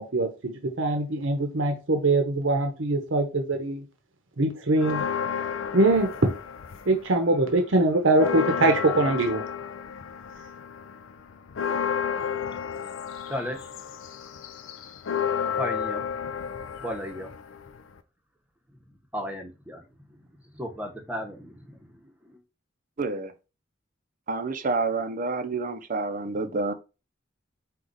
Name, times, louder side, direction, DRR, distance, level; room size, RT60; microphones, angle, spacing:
voice 1, 0.0-3.8 4.4-5.0 5.7-6.1 6.9-9.4, right 2 dB, 80° right, 0.9 m, -23 dB
sound 1, 4.8-7.1 7.5-18.0, left 7 dB, 90° left, 0.5 m, -32 dB
voice 2, 13.3-13.7 15.6-16.0 16.8-17.3 19.1-22.4, equal, 10° right, 0.9 m, -35 dB
voice 3, 23.0-23.3 24.3-26.7, right 3 dB, 45° right, 0.6 m, -28 dB
4.8 x 2.4 x 4.0 m
head